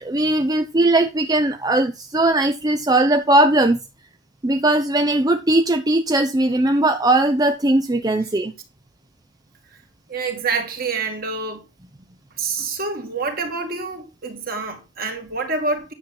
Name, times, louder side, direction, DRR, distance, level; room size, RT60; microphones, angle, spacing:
voice 1, 0.0-3.8 4.4-8.5, right 2 dB, 20° right, 0.6 m, -19 dB
voice 2, 10.1-11.6 12.4-15.9, right 4 dB, 50° right, 2.4 m, -27 dB
9.8 x 7.2 x 4.3 m
head